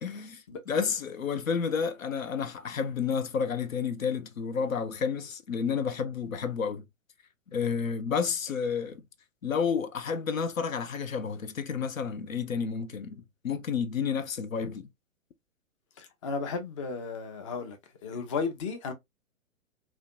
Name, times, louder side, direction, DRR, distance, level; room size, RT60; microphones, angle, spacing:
voice 1, 0.0-6.8 7.5-9.0 9.4-14.9, left 6 dB, 85° left, 0.5 m, -31 dB
voice 2, 16.0-17.8 18.0-18.9, left 4 dB, 25° left, 0.4 m, -34 dB
2.5 x 2.2 x 2.3 m
figure-of-eight pair, 115°, 39 cm